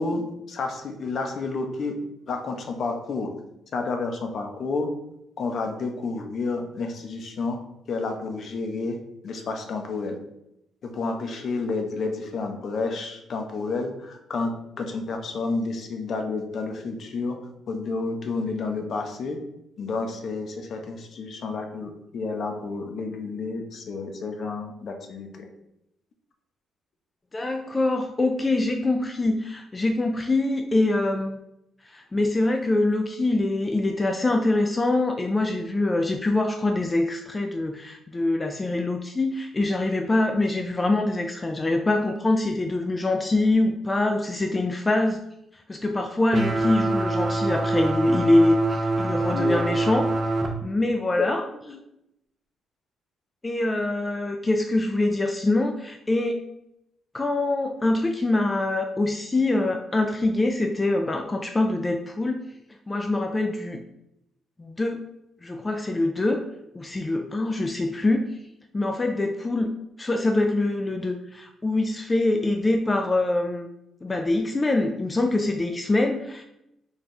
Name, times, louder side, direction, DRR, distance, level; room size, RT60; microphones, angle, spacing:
voice 1, 0.0-1.9 2.3-3.3 3.7-4.9 5.4-7.6 7.9-9.0 9.2-10.2 10.8-14.5 14.8-17.4 17.7-19.4 19.8-25.5 49.3-49.6 51.2-51.3 51.7-51.8, left 3 dB, 60° left, 4 dB, 0.6 m, -30 dB
voice 2, 27.3-31.4 31.9-45.2 45.5-50.3 50.6-51.4 53.4-56.4 57.1-62.5 62.9-63.8 64.6-65.0 65.4-66.4 66.7-68.3 68.7-69.7 70.0-73.7 74.0-76.4, left 2 dB, 20° left, 4 dB, 0.3 m, -24 dB
sound 1, 46.3-50.5, right 2 dB, 35° right, 0.6 m, -25 dB
3.3 x 2.3 x 4.2 m, 0.84 s
cardioid pair, 90°, 0 cm